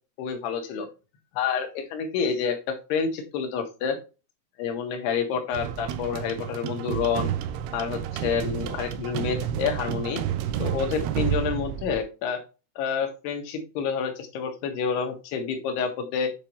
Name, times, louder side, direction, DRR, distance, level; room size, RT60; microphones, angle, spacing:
voice 1, 0.2-0.9 1.3-4.0 4.6-7.3 7.7-10.2 10.6-12.4 12.8-16.3, left 6 dB, 70° left, 4 dB, 3.6 m, -28 dB
sound 1, 5.5-12.0, right 10 dB, 80° right, 2.7 m, -30 dB
9.0 x 5.8 x 3.1 m, 0.31 s
omnidirectional pair, 5.0 m